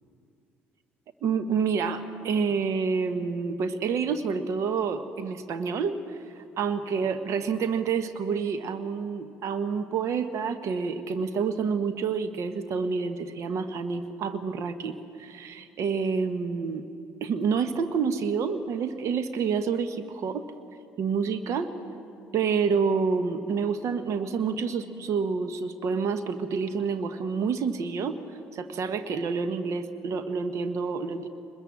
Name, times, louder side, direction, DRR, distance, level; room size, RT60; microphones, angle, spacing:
voice 1, 1.2-16.9 17.2-20.5 21.0-21.7 22.3-31.3, right 5 dB, 55° right, 10 dB, 1.3 m, -28 dB
23.0 x 21.0 x 7.5 m, 2.5 s
figure-of-eight pair, 50°, 6 cm